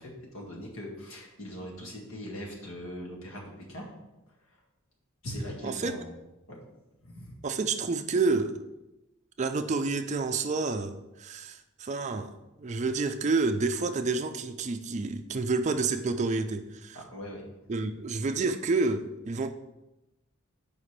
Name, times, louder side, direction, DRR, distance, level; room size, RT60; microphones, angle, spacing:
voice 1, 0.0-3.9 5.2-6.1 6.5-6.6 7.0-7.3 16.9-17.4, equal, 75° left, -2 dB, 1.9 m, -40 dB
voice 2, 5.6-6.0 7.4-8.7 9.4-12.3 12.6-17.0 17.7-19.5, right 3 dB, 35° right, 8 dB, 0.4 m, -29 dB
5.1 x 5.0 x 5.7 m, 0.95 s
head